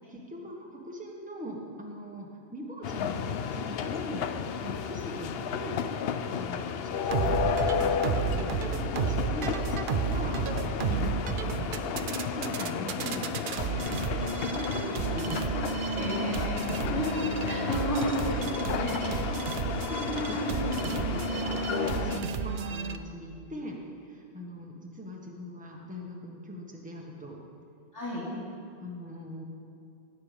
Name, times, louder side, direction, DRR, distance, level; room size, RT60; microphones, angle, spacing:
voice 1, 0.1-5.8 6.3-16.1 16.7-16.9 19.2-23.8 24.0-27.4 28.2-28.4 28.8-29.4, equal, 5° right, -1 dB, 1.3 m, -41 dB
sound 1, 2.8-22.2, left 7 dB, 65° left, 0.8 m, -32 dB
sound 2, 7.1-23.0, right 7 dB, 60° right, 0.7 m, -32 dB
voice 2, 15.9-16.6 16.9-17.0 17.4-19.2 20.3-20.5 22.1-22.2 27.9-28.2, equal, 15° left, -10 dB, 2.4 m, -33 dB
17.0 x 7.0 x 5.1 m, 2.5 s
omnidirectional pair, 1.1 m